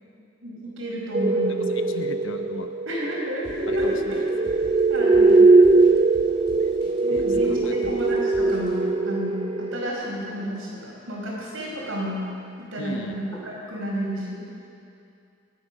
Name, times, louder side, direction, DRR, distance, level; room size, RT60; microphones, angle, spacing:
voice 1, 0.4-1.7 2.9-4.2 4.5-4.6 4.9-5.5 7.0-12.2 12.6-14.4, equal, 70° right, -4 dB, 5.0 m, -31 dB
sound 1, 1.1-9.9, right 3 dB, 25° right, 0.3 m, -20 dB
voice 2, 1.5-2.7 3.7-4.6 6.6-6.7 7.1-7.9 12.8-13.2, left 2 dB, 65° left, 7 dB, 0.9 m, -38 dB
sound 2, 3.4-8.8, equal, 25° left, 2.6 m, -44 dB
sound 3, 7.4-8.4 9.8-10.6 12.7-13.6, right 1 dB, 5° left, 2.6 m, -43 dB
21.0 x 9.4 x 6.3 m, 2.5 s
head